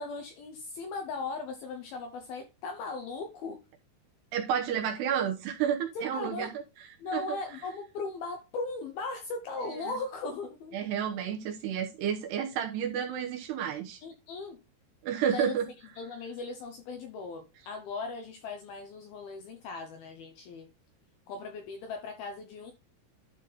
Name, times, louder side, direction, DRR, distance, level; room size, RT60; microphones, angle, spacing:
voice 1, 0.0-3.6 5.9-6.5 7.0-10.8 14.0-14.6 15.3-15.5 16.0-20.7 21.3-22.7, left 3 dB, 75° left, 2.3 m, -38 dB
voice 2, 4.3-6.5 7.1-7.2 9.6-9.9 10.7-14.0 15.0-15.7, right 8 dB, 75° right, 2.7 m, -31 dB
12.0 x 4.0 x 4.1 m
omnidirectional pair, 5.5 m